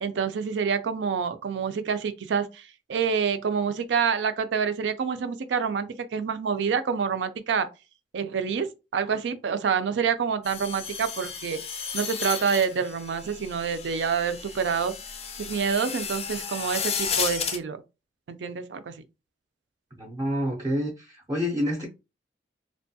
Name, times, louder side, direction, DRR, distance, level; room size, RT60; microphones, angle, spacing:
voice 1, 0.0-7.7 8.1-8.7 8.9-11.6 11.9-14.9 15.4-17.8 18.3-19.0, right 6 dB, 80° right, 0.4 m, -27 dB
sound 1, 10.4-17.6, left 6 dB, 35° left, 0.4 m, -33 dB
voice 2, 20.0-21.9, equal, 20° right, 0.5 m, -28 dB
2.9 x 2.2 x 2.6 m
head